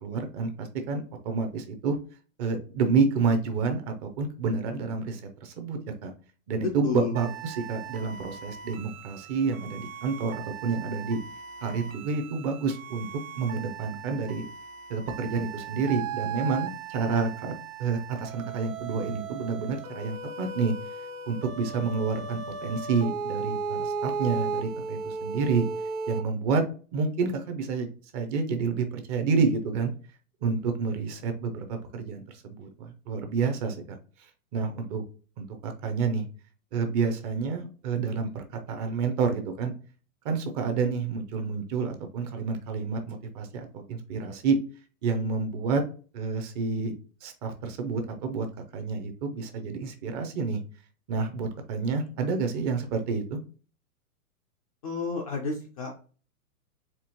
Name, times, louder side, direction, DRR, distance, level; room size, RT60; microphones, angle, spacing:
voice 1, 0.0-2.0 2.4-6.1 6.5-11.2 11.6-13.1 13.3-14.4 14.9-17.5 17.8-20.7 21.3-25.6 26.1-26.6 26.9-29.9 30.4-35.0 35.4-36.2 36.7-39.7 40.2-44.6 45.0-45.8 46.1-46.9 47.2-48.5 48.7-50.6 51.1-53.4, right 4 dB, 30° right, 6 dB, 0.5 m, -29 dB
voice 2, 6.6-7.1 54.8-55.9, left 5 dB, 25° left, 1 dB, 0.3 m, -31 dB
sound 1, 7.1-26.2, right 5 dB, 60° right, 1.4 m, -37 dB
4.4 x 2.8 x 2.9 m, 0.39 s
hypercardioid pair, 130°, 45 cm